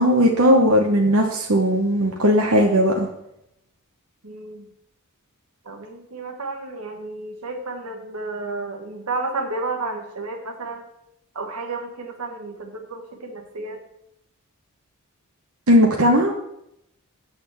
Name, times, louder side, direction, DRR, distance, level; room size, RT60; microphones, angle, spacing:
voice 1, 0.0-3.1 15.7-16.3, equal, 70° right, 0 dB, 1.0 m, -17 dB
voice 2, 4.2-4.7 5.6-10.9 11.3-13.8, right 3 dB, 90° right, 3 dB, 1.4 m, -32 dB
8.7 x 4.3 x 7.1 m, 0.81 s
head